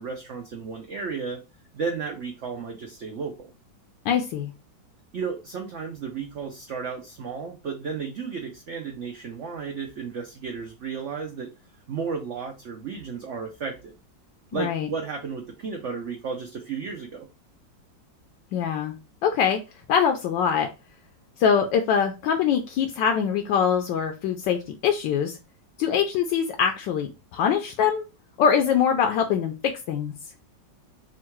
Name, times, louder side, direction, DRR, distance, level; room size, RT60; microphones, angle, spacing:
voice 1, 0.0-1.4 1.7-3.5 5.1-11.5 11.9-13.9 14.5-17.3, right 5 dB, 70° right, 2 dB, 0.6 m, -33 dB
voice 2, 4.0-4.5 14.5-14.9 18.5-19.0 19.2-19.6 19.9-20.7 21.4-25.4 25.8-28.0 28.4-30.1, left 7 dB, 80° left, 5 dB, 1.2 m, -23 dB
3.7 x 2.3 x 4.4 m, 0.28 s
omnidirectional pair, 2.0 m